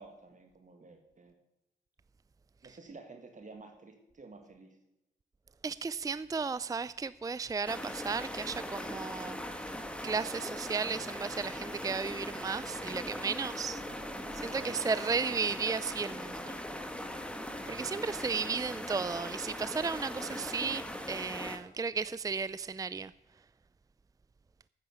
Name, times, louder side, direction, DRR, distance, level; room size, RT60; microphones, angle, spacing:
voice 1, 0.0-1.4 2.6-4.8 13.8-14.9, right 3 dB, 45° right, 1.8 m, -52 dB
voice 2, 5.6-9.4 10.0-13.8 14.3-16.6 17.7-23.1, right 5 dB, 20° right, 0.4 m, -34 dB
sound 1, 7.7-21.6, equal, 5° left, 1.8 m, -40 dB
9.7 x 9.1 x 8.1 m
supercardioid pair, 50°, 18 cm